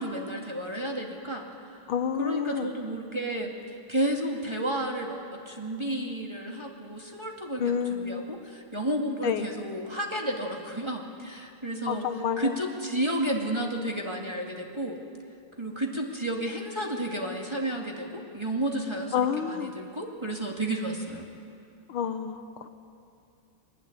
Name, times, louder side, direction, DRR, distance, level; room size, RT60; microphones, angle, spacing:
voice 1, 0.0-1.5 2.2-12.0 12.4-15.0 15.6-21.3, right 1 dB, 15° right, 0 dB, 2.1 m, -32 dB
voice 2, 1.9-2.7 7.6-8.4 9.2-9.5 11.9-12.6 19.1-19.7 21.9-22.7, left 7 dB, 70° left, 9 dB, 1.7 m, -29 dB
22.5 x 20.0 x 9.6 m, 2.5 s
omnidirectional pair, 2.4 m